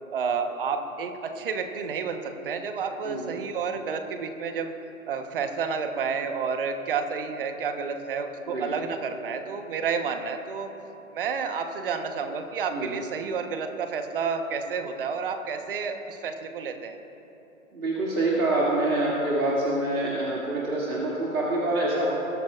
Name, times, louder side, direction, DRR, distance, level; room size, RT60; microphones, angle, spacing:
voice 1, 0.1-4.7 5.1-10.7 11.1-17.0, right 5 dB, 40° right, 7 dB, 1.1 m, -30 dB
voice 2, 3.0-3.4 8.5-8.7 12.7-13.0 17.7-22.1, right 2 dB, 75° right, -6 dB, 2.5 m, -26 dB
22.0 x 11.5 x 2.4 m, 3.0 s
figure-of-eight pair, 135°, 42 cm